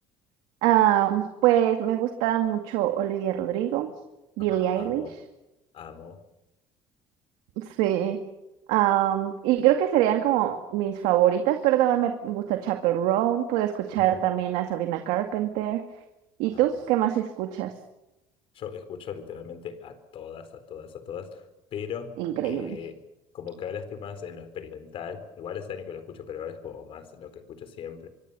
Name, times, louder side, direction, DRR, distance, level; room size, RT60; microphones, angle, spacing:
voice 1, 0.6-3.9 4.4-5.0 7.6-8.2 8.7-15.8 16.4-17.7 22.2-22.8, right 12 dB, 90° right, 5 dB, 2.1 m, -24 dB
voice 2, 4.4-5.2 5.7-6.2 13.9-14.4 16.5-16.7 18.5-21.4 21.7-23.0 23.3-28.1, left 7 dB, 50° left, 11 dB, 4.2 m, -39 dB
25.0 x 24.0 x 6.9 m, 0.96 s
cardioid pair, 130°, 12 cm